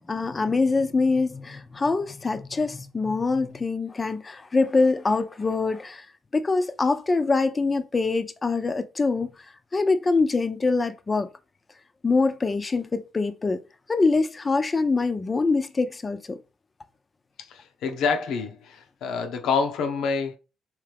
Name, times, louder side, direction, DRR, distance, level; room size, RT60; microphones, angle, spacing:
voice 1, 0.0-6.0 6.3-9.3 9.7-11.3 12.0-13.6 13.9-16.4, left 3 dB, 30° left, 0.6 m, -24 dB
voice 2, 17.4-20.4, left 5 dB, 80° left, 0.9 m, -27 dB
4.8 x 3.2 x 3.4 m
cardioid pair, 90°, 0 cm